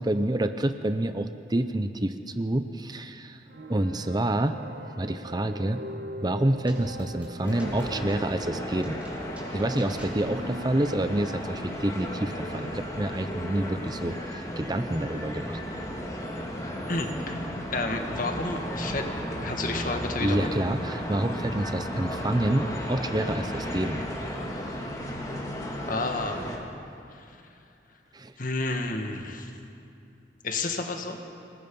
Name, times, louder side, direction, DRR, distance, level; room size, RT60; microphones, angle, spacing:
voice 1, 0.0-3.4 3.7-4.6 5.0-5.8 6.2-9.0 9.5-15.6 20.2-24.0 28.1-28.3, right 1 dB, 25° right, 9 dB, 0.7 m, -28 dB
sound 1, 3.5-14.7, right 1 dB, 60° right, 1.5 m, -43 dB
sound 2, 6.7-10.8, right 1 dB, 10° right, 3.7 m, -48 dB
sound 3, 7.4-26.6, equal, 20° left, 2.6 m, -34 dB
voice 2, 16.9-20.5 25.9-26.4 27.1-27.3 28.4-29.5 30.4-31.2, left 2 dB, 50° left, 4 dB, 1.8 m, -31 dB
26.5 x 20.0 x 5.5 m, 2.7 s
head